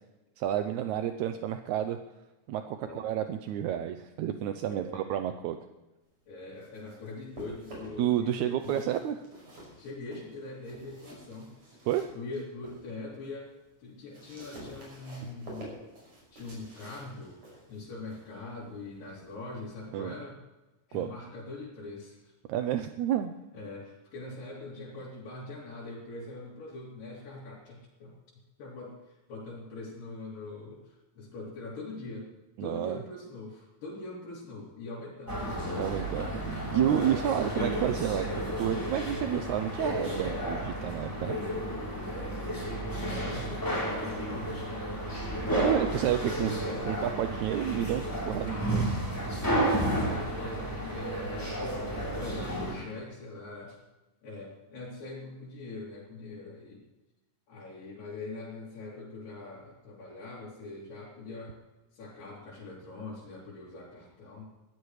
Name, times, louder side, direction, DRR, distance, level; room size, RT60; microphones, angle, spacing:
voice 1, 0.4-2.0 2.5-5.6 8.0-9.2 11.9-12.1 19.9-20.1 20.9-21.1 22.5-23.3 32.6-33.0 35.8-36.3 36.7-38.3 38.6-41.4 45.5-48.9, right 10 dB, 80° right, 8 dB, 1.8 m, -30 dB
voice 2, 4.7-5.1 6.3-8.9 9.8-11.5 12.1-15.8 16.3-17.4 17.7-20.4 20.9-22.3 23.5-28.2 28.6-32.3 32.6-35.6 37.0-37.4 42.1-42.6 42.8-44.7 45.7-46.9 49.5-53.8 54.2-56.8 57.5-61.6 61.9-64.4, left 2 dB, 75° left, -6 dB, 4.6 m, -43 dB
sound 1, 6.3-8.2 8.5-12.9 13.3-19.9, right 1 dB, 55° right, 7.3 m, -50 dB
sound 2, 35.3-52.7, right 1 dB, 5° left, 3.4 m, -32 dB
22.0 x 15.0 x 3.2 m, 1.1 s
omnidirectional pair, 3.9 m